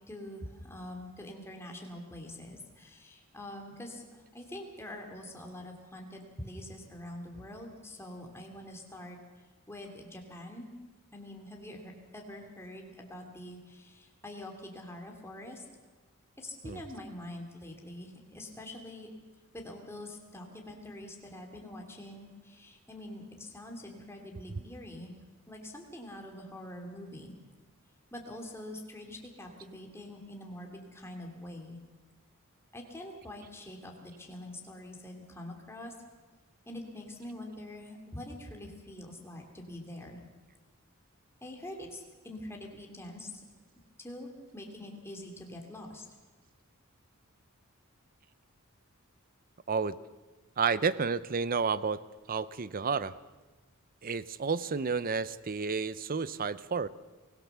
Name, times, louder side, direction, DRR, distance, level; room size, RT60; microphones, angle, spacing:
voice 1, 0.1-9.2 9.7-10.8 11.1-15.6 16.4-19.1 19.5-25.1 25.5-27.3 28.1-31.8 32.7-35.9 36.7-40.2 41.4-43.4 44.0-46.1, left 1 dB, 10° left, 2 dB, 2.8 m, -45 dB
voice 2, 50.6-52.0 52.3-53.1 54.0-56.9, right 5 dB, 40° right, 17 dB, 0.6 m, -31 dB
24.0 x 16.5 x 6.9 m, 1.3 s
head